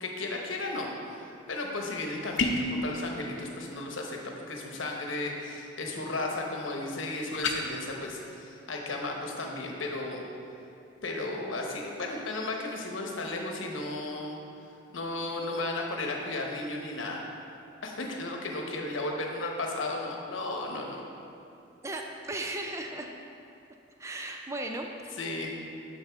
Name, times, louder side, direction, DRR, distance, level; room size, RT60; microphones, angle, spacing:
voice 1, 0.0-10.2 11.0-14.4 14.9-17.2 17.8-21.0 25.2-25.5, left 2 dB, 90° left, 0 dB, 1.1 m, -34 dB
sound 1, 2.4-2.8 7.3-7.6, left 3 dB, 70° left, 0.7 m, -27 dB
voice 2, 21.8-23.1 24.0-25.2, right 2 dB, 15° right, 3 dB, 0.3 m, -36 dB
9.0 x 6.7 x 3.6 m, 2.7 s
head